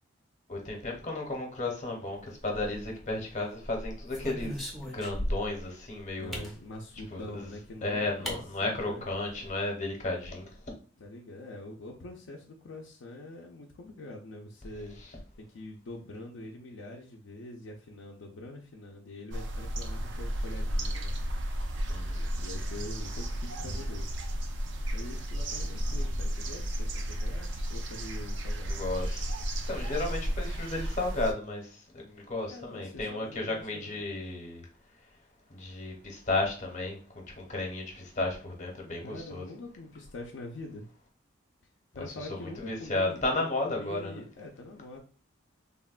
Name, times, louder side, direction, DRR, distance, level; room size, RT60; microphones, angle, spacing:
voice 1, 0.5-6.4 7.1-7.5 7.8-10.5 21.9-22.3 23.6-23.8 28.7-29.3 29.7-34.7 35.5-39.5 42.3-44.2, left 2 dB, 40° left, 0 dB, 0.8 m, -34 dB
sound 1, 2.4-3.1 3.6-5.6 6.3-6.6 7.7-7.8 8.2-8.4 8.7-8.8 9.1-9.5, equal, ahead, 0.5 m, -36 dB
voice 2, 6.2-9.1 11.0-21.1 22.4-24.1 24.9-28.7 32.1-32.2 32.5-34.0 39.0-40.9 41.9-45.0, left 2 dB, 65° left, 1 dB, 0.4 m, -44 dB
sound 2, 19.3-31.3, equal, 65° right, 0.4 m, -33 dB
3.4 x 2.2 x 2.3 m, 0.40 s
head